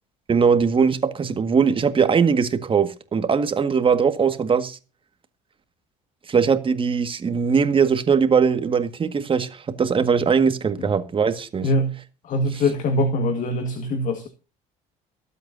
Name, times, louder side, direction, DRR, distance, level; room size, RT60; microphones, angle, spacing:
voice 1, 0.3-4.8 6.3-11.7, right 6 dB, 35° right, 1.8 m, -20 dB
voice 2, 11.6-12.0 12.2-14.3, left 1 dB, 55° left, 1.9 m, -23 dB
23.5 x 8.2 x 2.7 m
supercardioid pair, 85°, 16 cm